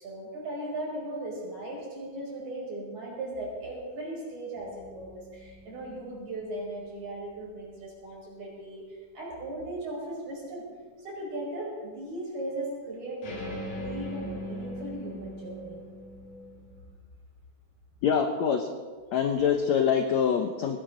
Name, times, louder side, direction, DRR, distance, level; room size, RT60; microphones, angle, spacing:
voice 1, 0.0-10.6 11.0-15.8, right 1 dB, 50° right, -4 dB, 6.6 m, -37 dB
sound 1, 4.6-7.5 13.2-16.8, equal, 55° left, 5.3 m, -41 dB
voice 2, 18.0-18.7 19.1-20.8, left 7 dB, 75° left, 5 dB, 1.7 m, -25 dB
20.0 x 17.5 x 3.9 m, 1.5 s
omnidirectional pair, 4.3 m